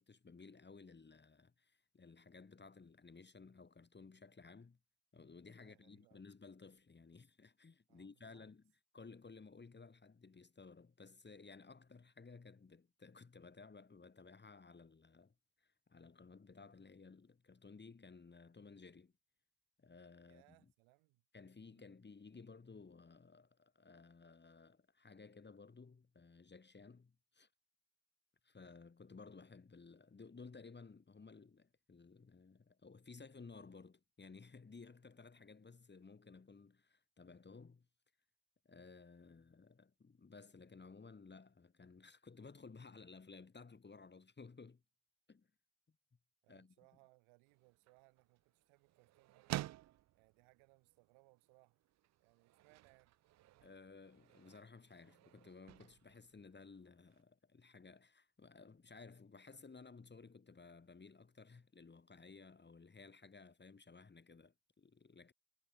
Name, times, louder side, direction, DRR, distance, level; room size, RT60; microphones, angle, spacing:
voice 1, 0.0-4.8 5.1-8.6 8.9-19.1 19.8-20.7 21.3-27.5 28.4-37.9 38.6-44.8 45.3-45.5 46.5-46.7 53.6-65.3, left 4 dB, 20° left, 2.6 m, -57 dB
voice 2, 5.6-6.2 7.9-8.5 20.3-21.2 21.7-22.0 46.4-49.6 50.1-51.8 52.2-53.1, right 29 dB, 70° right, 6.4 m, -70 dB
sound 1, 47.5-57.2, right 15 dB, 35° right, 0.5 m, -51 dB
hypercardioid pair, 60°, 50 cm